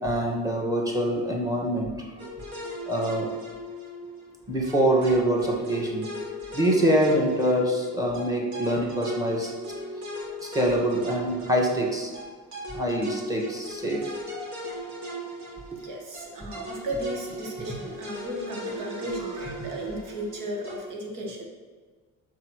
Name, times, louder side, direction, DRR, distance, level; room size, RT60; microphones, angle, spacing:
voice 1, 0.0-2.1 2.9-3.3 4.5-9.5 10.4-12.1 12.7-14.0 15.7-15.8 19.2-19.3, right 1 dB, 10° right, 0 dB, 2.0 m, -25 dB
sound 1, 2.2-20.8, right 1 dB, 65° right, 2.4 m, -38 dB
voice 2, 15.8-21.4, right 1 dB, 90° right, 0 dB, 2.0 m, -35 dB
6.2 x 5.8 x 6.5 m, 1.4 s
cardioid pair, 105°, 31 cm